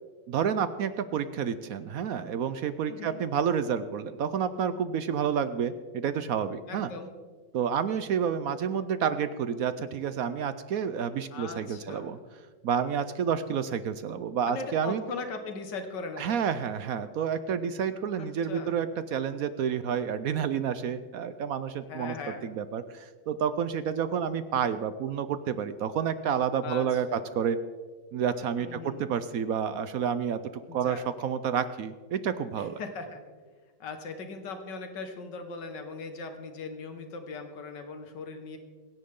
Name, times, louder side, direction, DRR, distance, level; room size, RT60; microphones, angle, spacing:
voice 1, 0.3-6.9 7.5-12.2 12.6-15.0 16.2-22.1 22.4-27.6 28.1-30.4 30.7-32.8, right 7 dB, 70° right, 12 dB, 0.8 m, -29 dB
voice 2, 2.9-3.2 6.7-7.1 11.3-12.2 14.5-16.3 18.1-18.8 21.9-22.5 26.6-27.4 28.6-29.1 30.7-31.0 32.6-33.2 33.8-38.6, left 4 dB, 65° left, 6 dB, 2.1 m, -39 dB
24.5 x 10.5 x 3.7 m, 1.5 s
omnidirectional pair, 2.0 m